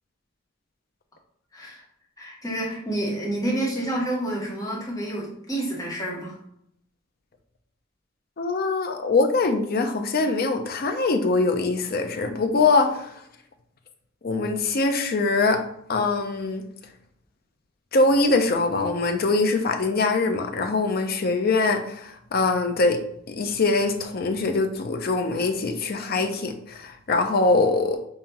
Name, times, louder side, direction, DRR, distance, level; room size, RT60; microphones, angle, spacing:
voice 1, 1.5-1.8 2.2-6.4, right 1 dB, 20° left, -3 dB, 1.1 m, -29 dB
voice 2, 8.4-13.1 14.2-15.6 15.9-16.6 17.9-23.0 23.3-28.0, left 3 dB, 55° left, 6 dB, 0.5 m, -23 dB
5.4 x 2.4 x 2.9 m, 0.73 s
head